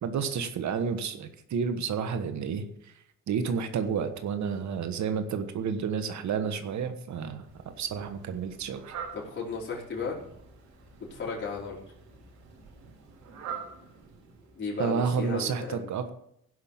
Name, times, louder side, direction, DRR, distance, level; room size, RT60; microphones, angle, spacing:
voice 1, 0.0-2.9 3.3-7.5 7.8-8.9 14.8-16.1, right 6 dB, 70° right, 9 dB, 1.4 m, -30 dB
Fowl, 7.4-14.7, right 6 dB, 90° right, 5.9 m, -45 dB
voice 2, 9.1-10.2 11.1-11.8 14.5-15.8, left 4 dB, 35° left, -4 dB, 4.6 m, -34 dB
16.0 x 5.9 x 7.3 m, 0.73 s
cardioid pair, 90°, 30 cm